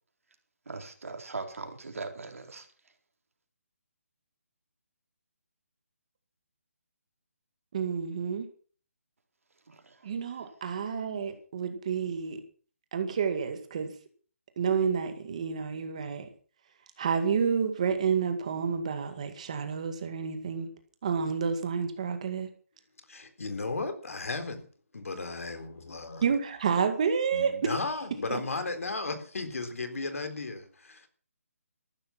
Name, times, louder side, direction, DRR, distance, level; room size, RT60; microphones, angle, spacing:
voice 1, 0.7-2.7 9.7-10.1, right 3 dB, 65° right, 4.3 m, -40 dB
voice 2, 7.7-8.5 10.0-12.4 12.9-13.9 14.6-16.3 17.0-20.7 21.0-22.5 26.2-27.7 28.3-28.4, right 6 dB, 25° right, 1.9 m, -29 dB
voice 3, 23.1-24.7 24.9-26.3 27.3-31.1, left 3 dB, 70° left, 3.7 m, -35 dB
15.0 x 12.0 x 6.0 m
hypercardioid pair, 175°, 8 cm